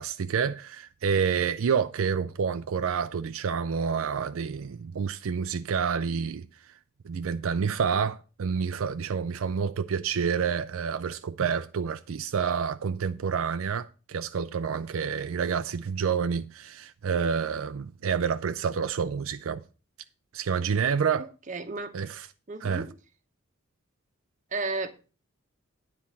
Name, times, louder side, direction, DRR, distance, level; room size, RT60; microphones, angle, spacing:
voice 1, 0.0-6.7 7.0-19.6 20.3-21.3 21.9-22.3 22.6-22.9, right 6 dB, 75° right, 0.4 m, -28 dB
voice 2, 21.5-21.9 22.5-22.9 24.5-24.9, right 3 dB, 35° right, 1.0 m, -32 dB
9.8 x 4.3 x 7.1 m
head